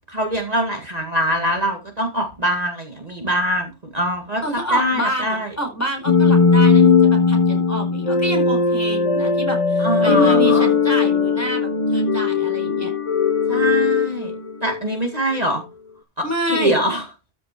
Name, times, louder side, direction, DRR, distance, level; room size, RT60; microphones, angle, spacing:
voice 1, 0.1-5.5 9.8-10.7 13.5-14.3 14.6-15.6 16.2-17.0, equal, 35° right, 3 dB, 2.1 m, -23 dB
voice 2, 4.4-12.9 16.2-16.8, right 1 dB, 15° left, 3 dB, 4.9 m, -27 dB
sound 1, 6.1-15.0, left 5 dB, 30° left, 0.8 m, -18 dB
13.5 x 6.0 x 4.6 m, 0.26 s
omnidirectional pair, 1.2 m